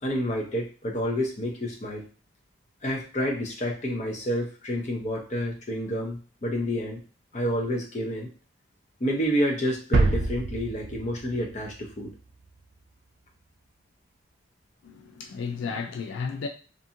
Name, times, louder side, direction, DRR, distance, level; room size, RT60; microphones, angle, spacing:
voice 1, 0.0-2.0 2.8-7.0 7.3-8.3 9.0-12.1, equal, 35° left, 0.6 m, -29 dB
sound 1, 9.9-12.6, right 3 dB, 65° right, 0.4 m, -27 dB
voice 2, 14.8-16.5, left 5 dB, 80° left, 0.3 m, -33 dB
2.6 x 2.4 x 2.7 m
head